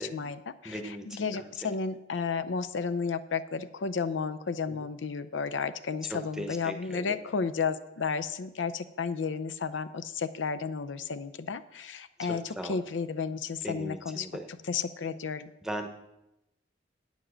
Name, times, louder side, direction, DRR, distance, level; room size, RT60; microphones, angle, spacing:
voice 1, 0.0-0.8 1.1-14.3 14.7-15.5, left 5 dB, 85° left, 11 dB, 0.5 m, -32 dB
voice 2, 0.6-1.7 4.7-4.8 6.0-7.3 12.2-12.8 13.6-14.5 15.6-15.9, equal, 5° right, 5 dB, 0.9 m, -39 dB
8.9 x 7.2 x 6.2 m, 0.92 s
head